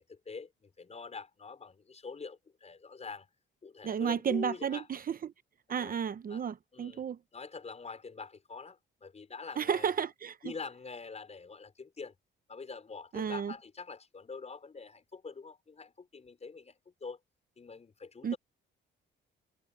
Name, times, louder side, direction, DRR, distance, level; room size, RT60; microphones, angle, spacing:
voice 1, 0.0-3.3 3.6-4.9 5.7-6.0 6.3-6.4 6.7-7.0 7.3-9.9 10.4-12.1 12.5-17.2 17.6-18.4, left 4 dB, 35° left, 5.5 m, -45 dB
voice 2, 3.8-5.3 5.7-7.2 9.6-10.5 13.1-13.5 18.2-18.3, right 7 dB, 45° right, 0.9 m, -32 dB
cardioid pair, 90°, 20 cm